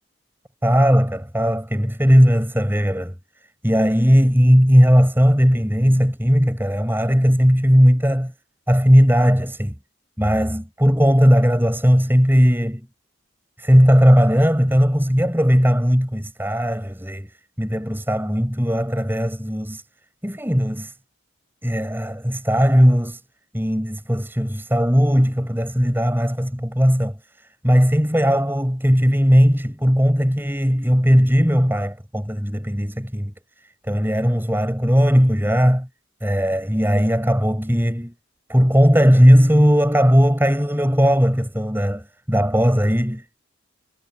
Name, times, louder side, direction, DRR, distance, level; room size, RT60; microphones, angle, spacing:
voice 1, 0.6-3.1 3.6-8.3 8.7-9.7 10.2-12.9 13.6-19.8 20.2-20.9 21.6-23.2 23.5-33.3 33.9-35.9 36.2-38.1 38.5-43.4, equal, 10° right, 7.9 m, -17 dB
head